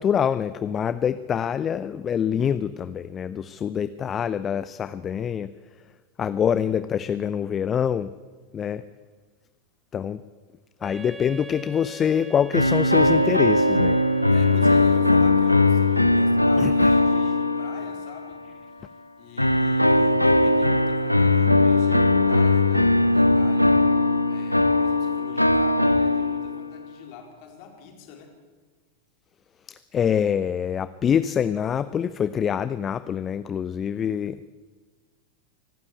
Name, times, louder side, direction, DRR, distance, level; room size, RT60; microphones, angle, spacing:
voice 1, 0.0-5.5 6.2-8.1 8.5-8.8 9.9-10.2 10.8-14.0 16.6-16.9 29.9-34.5, left 8 dB, 25° left, 15 dB, 0.6 m, -25 dB
Wind instrument woodwind instrument, 10.8-15.3, right 1 dB, 10° right, 1.2 m, -42 dB
sound 1, 12.5-18.3 19.4-26.8, left 2 dB, 85° left, 0.8 m, -19 dB
voice 2, 14.3-18.4 19.2-23.9 24.3-28.4, left 6 dB, 45° left, 3 dB, 4.2 m, -44 dB
25.0 x 12.5 x 8.5 m, 1.4 s
figure-of-eight pair, 90°, 0 cm